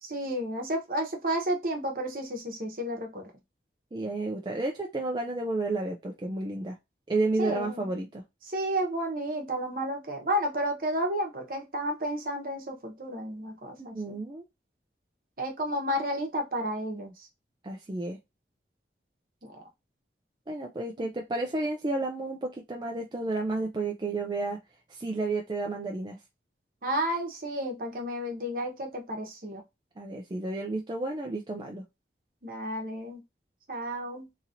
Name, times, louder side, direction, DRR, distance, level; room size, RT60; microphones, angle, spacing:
voice 1, 0.0-3.2 7.4-7.9 8.4-14.2 15.4-17.3 19.4-19.6 21.0-21.1 26.8-29.6 32.4-33.2 33.7-34.3, equal, 50° right, 0.9 m, -32 dB
voice 2, 3.9-6.8 7.1-8.2 13.8-14.4 17.6-18.2 20.5-24.6 24.9-26.2 30.0-31.8, right 2 dB, 25° right, 0.4 m, -31 dB
2.9 x 2.8 x 2.5 m
head